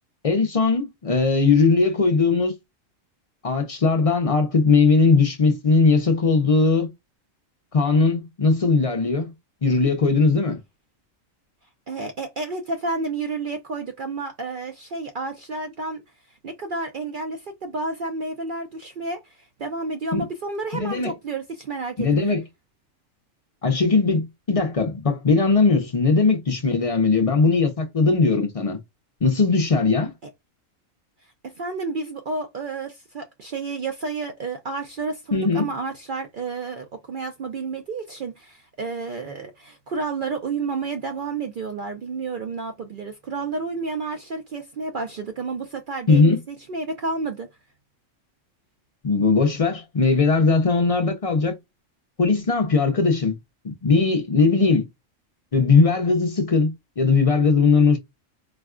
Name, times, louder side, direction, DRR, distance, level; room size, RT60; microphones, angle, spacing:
voice 1, 0.2-2.5 3.4-6.9 7.7-9.3 9.6-10.6 20.1-20.3 20.7-21.1 22.0-22.4 23.6-28.8 29.2-30.1 35.3-35.7 46.1-46.4 49.0-51.5 52.2-53.4 53.6-54.9 55.5-58.0, left 4 dB, 45° left, 0.4 m, -19 dB
voice 2, 11.9-16.0 16.3-22.4 31.4-47.5, right 3 dB, 65° right, 0.5 m, -31 dB
4.2 x 2.2 x 2.4 m
omnidirectional pair, 1.4 m